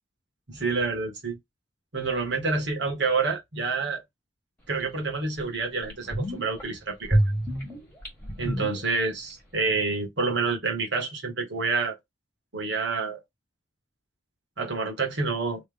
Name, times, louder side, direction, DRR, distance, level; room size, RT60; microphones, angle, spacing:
voice 1, 0.5-1.4 1.9-4.0 4.7-7.2 8.4-12.0 12.5-13.2 14.6-15.6, right 4 dB, 60° right, 1.6 m, -28 dB
sound 1, 4.8-4.9 5.4-5.5 5.8-6.6 7.1-9.3 9.6-9.7, right 1 dB, 5° left, 1.7 m, -27 dB
3.3 x 3.1 x 3.5 m
head